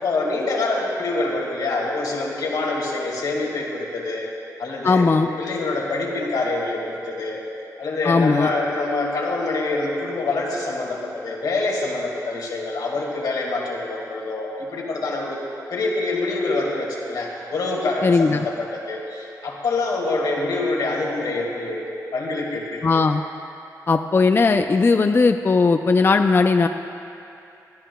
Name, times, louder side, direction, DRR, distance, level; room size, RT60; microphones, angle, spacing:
voice 1, 0.0-4.3 4.6-5.1 5.4-7.4 7.8-15.4 15.7-21.8 22.1-22.9, left 2 dB, 90° left, -2 dB, 1.9 m, -25 dB
voice 2, 4.8-5.3 8.1-8.5 18.0-18.4 22.8-23.2 23.9-26.7, left 4 dB, 35° left, 7 dB, 0.4 m, -17 dB
22.0 x 12.5 x 2.3 m, 2.7 s
cardioid pair, 80°, 7 cm